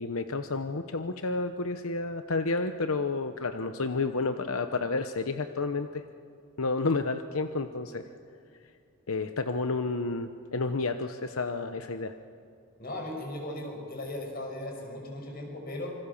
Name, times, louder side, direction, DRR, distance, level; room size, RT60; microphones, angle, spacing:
voice 1, 0.0-6.0 6.6-8.0 9.1-12.1, left 3 dB, 90° left, 8 dB, 0.9 m, -30 dB
voice 2, 12.8-16.0, left 1 dB, 45° left, 1 dB, 6.1 m, -37 dB
27.0 x 25.0 x 7.2 m, 2.4 s
head